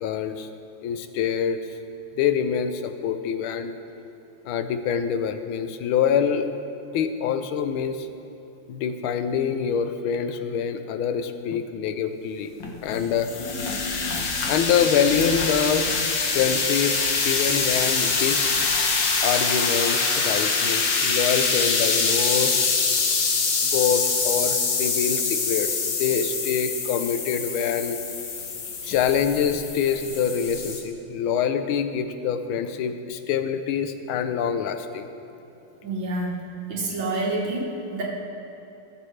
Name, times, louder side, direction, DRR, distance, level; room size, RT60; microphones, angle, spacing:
voice 1, 0.0-0.5 0.8-1.6 2.2-3.7 4.4-6.5 6.9-8.1 8.7-12.5 12.8-13.3 14.5-15.9 16.3-17.0 17.2-18.5 19.2-22.9 23.7-28.0 28.8-35.1, left 7 dB, 90° left, 9 dB, 1.5 m, -25 dB
sound 1, 12.6-30.8, left 4 dB, 65° left, 1.6 m, -25 dB
voice 2, 35.8-36.4 36.7-38.0, right 2 dB, 70° right, -2 dB, 2.0 m, -28 dB
17.5 x 6.7 x 3.2 m, 3.0 s
omnidirectional pair, 2.2 m